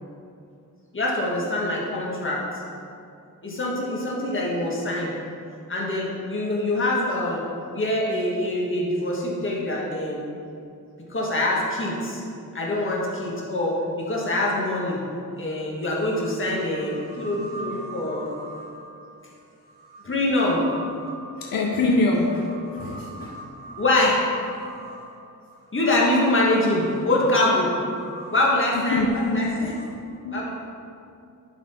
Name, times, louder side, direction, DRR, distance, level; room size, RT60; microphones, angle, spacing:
voice 1, 0.9-2.4 3.4-5.1 5.7-7.4 7.7-10.2 11.1-12.2 12.5-15.0 15.4-18.3 20.0-20.6 23.8-24.3 25.7-27.7 28.3-29.7 30.3-30.5, left 1 dB, 35° left, -4 dB, 1.6 m, -24 dB
sound 1, 15.4-15.5 16.0-29.9, right 1 dB, 25° right, 1.5 m, -43 dB
voice 2, 21.4-23.4 28.9-29.7 30.2-30.4, left 2 dB, 80° left, 0 dB, 0.7 m, -24 dB
11.5 x 4.1 x 4.3 m, 2.5 s
wide cardioid pair, 150°, 34 cm